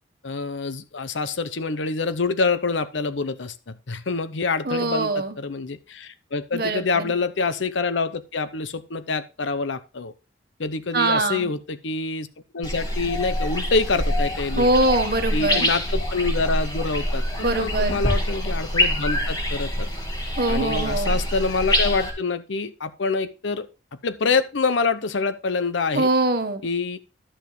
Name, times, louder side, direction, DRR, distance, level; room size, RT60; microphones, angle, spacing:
voice 1, 0.2-10.1 10.6-12.3 12.5-14.7 15.3-19.9 20.5-23.7 24.0-26.1 26.6-27.0, left 4 dB, 85° left, 14 dB, 0.8 m, -26 dB
voice 2, 4.6-5.4 6.5-7.1 10.9-11.5 14.5-15.7 17.4-18.0 20.4-21.2 25.9-26.6, right 2 dB, 55° right, 7 dB, 1.2 m, -23 dB
sound 1, 12.6-22.1, equal, 20° left, 1.9 m, -25 dB
11.5 x 7.2 x 3.2 m, 0.31 s
head